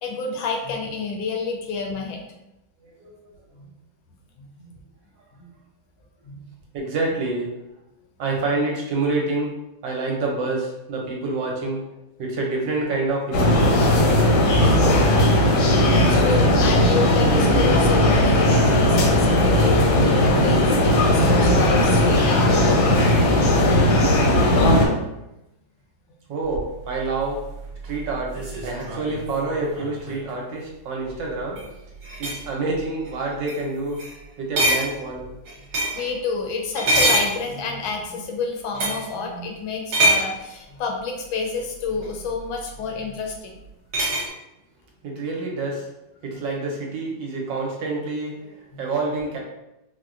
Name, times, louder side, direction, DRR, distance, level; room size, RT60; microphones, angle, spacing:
voice 1, 0.0-2.2 4.4-4.5 6.3-6.4 16.1-22.5 35.9-43.5 48.7-48.8, left 4 dB, 85° left, 1 dB, 1.4 m, -29 dB
voice 2, 2.8-3.3 6.7-7.5 8.2-9.5 9.8-11.8 12.2-13.8 26.3-27.4 27.8-31.6 32.2-34.0 34.4-35.2 45.0-45.9 46.2-49.4, right 3 dB, 75° right, -1 dB, 1.4 m, -27 dB
sound 1, 13.3-24.9, left 1 dB, 70° left, 1.0 m, -17 dB
sound 2, 26.5-30.3 31.4-31.7 32.0-32.5 33.0-33.2 33.5-33.6 34.0-34.2 34.6-36.1 36.7-37.9 38.7-39.1 39.9-40.4 42.0-42.1 43.9-44.3, right 1 dB, 60° right, 1.3 m, -24 dB
4.3 x 2.1 x 2.4 m, 0.91 s
omnidirectional pair, 2.2 m